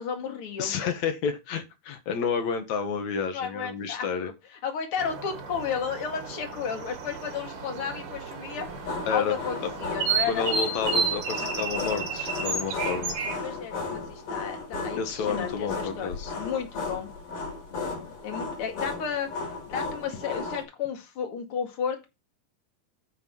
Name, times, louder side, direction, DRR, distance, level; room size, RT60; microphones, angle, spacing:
voice 1, 0.0-0.8 3.3-4.3 4.6-10.5 11.4-11.5 13.4-17.1 17.7-22.1, left 7 dB, 45° left, 4 dB, 2.7 m, -33 dB
voice 2, 0.6-4.3 9.1-9.4 10.3-13.2 15.0-16.3, left 6 dB, 65° left, 6 dB, 2.9 m, -30 dB
sound 1, 5.0-13.4, right 4 dB, 80° right, 3.5 m, -32 dB
sound 2, 8.5-20.6, left 3 dB, 85° left, 5.6 m, -35 dB
9.9 x 4.6 x 6.1 m, 0.25 s
omnidirectional pair, 3.6 m